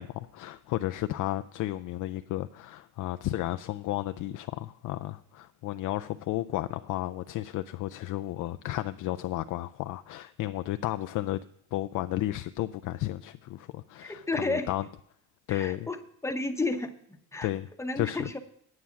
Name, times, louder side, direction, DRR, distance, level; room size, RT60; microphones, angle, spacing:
voice 1, 0.0-11.4 11.7-14.8 15.5-15.9 17.4-17.7 18.0-18.3, left 15 dB, 60° left, 0.5 m, -33 dB
voice 2, 14.0-14.7 15.5-17.5 17.8-18.4, left 2 dB, 10° left, 0.9 m, -32 dB
9.7 x 8.3 x 5.8 m
cardioid pair, 110°, 36 cm